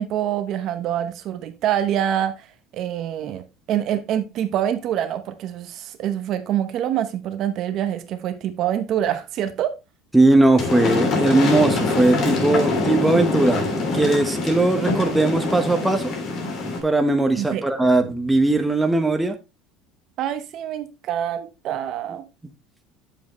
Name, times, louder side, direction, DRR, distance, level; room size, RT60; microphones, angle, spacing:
voice 1, 0.0-9.7 17.4-17.7 20.2-22.2, right 10 dB, 50° right, 0.9 m, -26 dB
voice 2, 10.1-13.7 13.9-16.1 16.8-19.3, right 2 dB, 5° right, 1.3 m, -19 dB
sound 1, 10.6-16.8, left 3 dB, 45° left, 3.2 m, -24 dB
8.9 x 7.3 x 3.1 m
cardioid pair, 140°, 0 cm